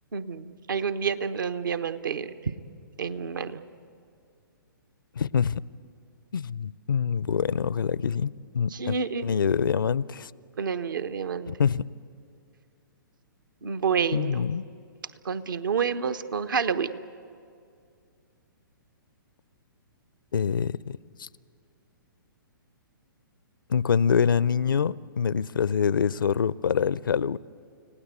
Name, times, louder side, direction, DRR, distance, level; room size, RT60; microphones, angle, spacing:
voice 1, 0.1-2.5 3.0-3.6 8.7-9.2 10.6-11.5 13.6-14.5 15.2-16.9, right 6 dB, 65° right, 11 dB, 1.1 m, -29 dB
voice 2, 5.2-5.6 6.3-9.0 9.2-10.3 11.5-11.8 14.1-14.6 20.3-21.3 23.7-27.4, left 7 dB, 70° left, 21 dB, 0.5 m, -25 dB
30.0 x 17.5 x 8.3 m, 2.4 s
figure-of-eight pair, 120°, 12 cm